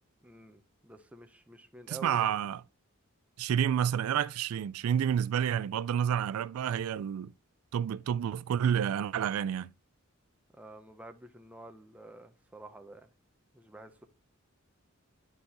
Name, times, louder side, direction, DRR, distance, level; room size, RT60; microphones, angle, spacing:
voice 1, 0.2-2.4 10.5-13.1 13.5-14.1, right 1 dB, 5° right, 0.6 m, -49 dB
voice 2, 1.9-2.6 3.4-7.3 7.7-9.7, right 9 dB, 90° right, 0.3 m, -29 dB
9.9 x 3.9 x 2.8 m
head